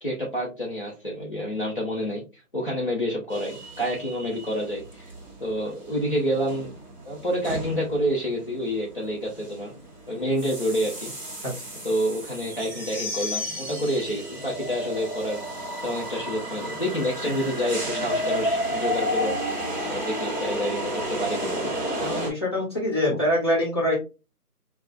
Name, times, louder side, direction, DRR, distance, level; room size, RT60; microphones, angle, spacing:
voice 1, 0.0-2.2 2.5-5.1 5.4-6.7 7.0-9.7 10.1-11.1 11.8-15.4 15.8-19.4 19.9-21.7 23.1-23.2, equal, 35° left, -4 dB, 0.8 m, -28 dB
sound 1, 3.3-22.3, equal, 30° right, 1.4 m, -32 dB
voice 2, 22.0-23.9, left 1 dB, 15° left, -5 dB, 1.2 m, -24 dB
5.6 x 2.3 x 2.2 m, 0.29 s
figure-of-eight pair, 170°, 46 cm